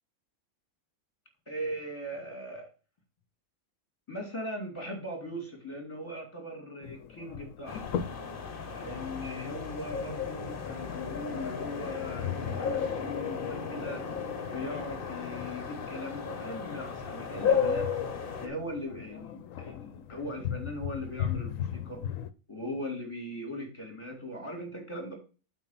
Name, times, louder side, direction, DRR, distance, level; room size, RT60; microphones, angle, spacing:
voice 1, 1.5-2.7 4.1-8.0 8.7-14.1 14.4-17.9 18.4-22.0 22.5-25.1, equal, 20° left, 1 dB, 3.6 m, -39 dB
sound 1, 6.8-22.3, left 9 dB, 75° left, 1.0 m, -40 dB
sound 2, 7.7-18.5, left 6 dB, 40° left, 1.3 m, -34 dB
8.1 x 4.6 x 5.9 m, 0.35 s
omnidirectional pair, 1.4 m